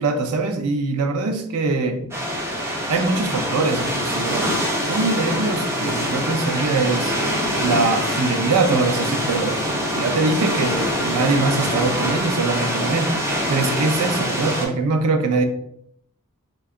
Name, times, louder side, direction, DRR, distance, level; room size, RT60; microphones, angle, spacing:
voice 1, 0.0-2.1 2.9-4.5 4.9-7.2 7.6-9.6 9.9-13.1 13.5-15.4, right 3 dB, 80° right, 7 dB, 0.5 m, -22 dB
sound 1, 2.1-14.7, equal, 10° right, 0.6 m, -24 dB
2.7 x 2.3 x 3.5 m, 0.71 s
head